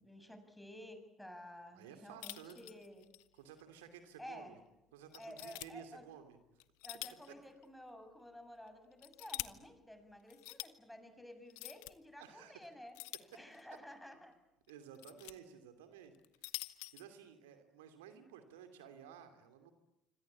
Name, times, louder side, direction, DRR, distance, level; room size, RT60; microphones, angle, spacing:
voice 1, 0.0-3.1 4.2-4.6 5.2-6.0 6.8-13.0 13.3-14.3, left 1 dB, 5° left, 8 dB, 7.0 m, -53 dB
voice 2, 1.7-2.6 3.3-4.6 4.9-6.4 12.2-12.6 14.7-16.1 16.4-16.5 16.9-19.7, right 8 dB, 80° right, 8 dB, 2.7 m, -54 dB
sound 1, 2.2-3.3 3.6-3.7 4.3-4.4 5.1-5.7 6.6-7.3 7.6-7.7 8.7-9.5 10.3-10.7 11.5-11.9 12.9-13.8 14.7-15.3 16.1-17.0, left 24 dB, 75° left, 1.0 m, -46 dB
26.5 x 26.0 x 8.6 m, 0.93 s
hypercardioid pair, 60°, 0 cm